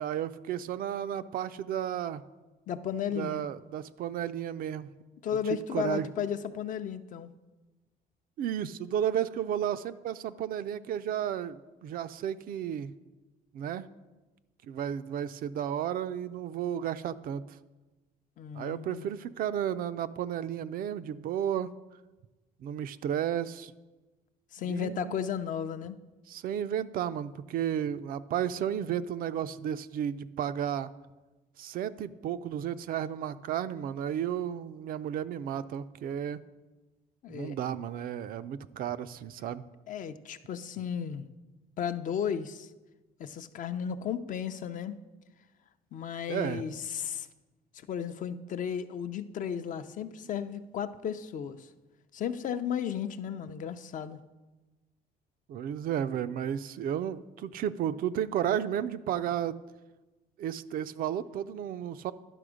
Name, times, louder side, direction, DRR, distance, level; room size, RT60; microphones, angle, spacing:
voice 1, 0.0-2.2 3.1-4.9 5.7-6.1 8.4-12.9 13.5-13.9 14.7-17.4 18.5-21.7 22.6-23.7 24.6-25.1 26.3-30.9 31.6-36.4 37.3-39.6 46.3-46.6 55.5-59.6 60.4-62.1, right 9 dB, 60° right, 13 dB, 0.4 m, -33 dB
voice 2, 2.7-3.5 5.2-7.3 18.4-19.0 24.5-26.0 37.2-37.6 39.9-41.3 41.8-42.7 43.2-45.0 45.9-47.3 47.7-51.7 52.1-54.2, left 8 dB, 50° left, 10 dB, 0.5 m, -34 dB
11.0 x 6.0 x 5.0 m, 1.2 s
cardioid pair, 110°, 17 cm